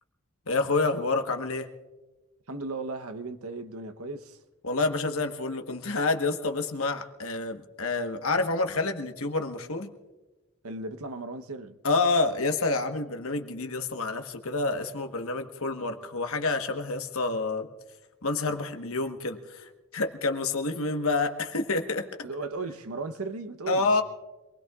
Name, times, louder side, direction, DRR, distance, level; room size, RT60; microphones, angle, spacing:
voice 1, 0.5-1.7 4.6-9.9 11.8-17.7 18.2-22.1 23.7-24.0, left 3 dB, 70° left, 1.2 m, -28 dB
voice 2, 2.5-4.4 10.6-11.8 22.2-24.0, right 3 dB, 80° right, 0.9 m, -36 dB
26.5 x 20.0 x 2.4 m
head